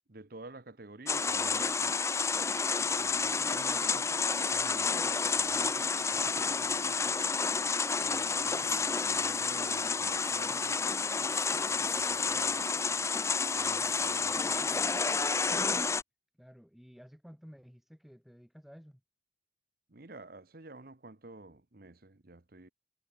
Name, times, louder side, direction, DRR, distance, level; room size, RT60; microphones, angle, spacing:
voice 1, 0.1-1.9 2.9-7.2 8.0-11.1 11.6-12.7 13.5-15.1 19.9-22.7, right 2 dB, 50° right, 1.1 m, -50 dB
sound 1, 1.1-16.0, left 5 dB, 15° left, 0.4 m, -30 dB
voice 2, 8.3-8.7 16.3-19.0, equal, ahead, 2.6 m, -54 dB
head